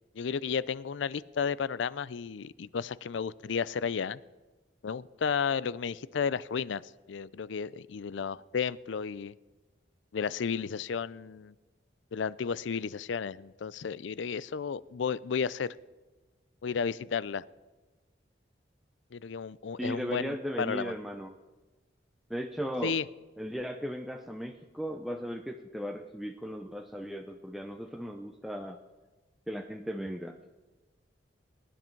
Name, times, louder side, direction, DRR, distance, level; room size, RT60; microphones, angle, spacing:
voice 1, 0.1-4.2 4.8-6.8 7.1-9.3 10.1-11.5 12.1-15.7 16.6-17.4 19.1-20.9 22.8-23.0, left 6 dB, 80° left, 20 dB, 0.4 m, -33 dB
voice 2, 19.8-21.3 22.3-23.0 23.4-28.8 29.5-30.4, equal, ahead, 4 dB, 0.5 m, -36 dB
21.0 x 10.0 x 4.5 m, 1.2 s
head